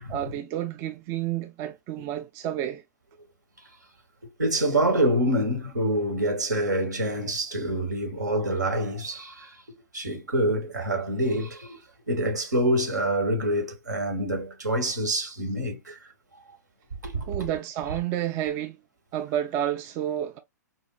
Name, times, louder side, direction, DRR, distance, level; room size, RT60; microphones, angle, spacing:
voice 1, 0.1-2.8 17.3-18.8 19.1-20.4, right 11 dB, 30° right, 0.3 m, -30 dB
voice 2, 4.4-9.5 9.9-11.8 12.1-16.0 17.0-17.3, right 1 dB, 75° right, 1.2 m, -26 dB
4.2 x 2.3 x 2.2 m
figure-of-eight pair, 110°, 10 cm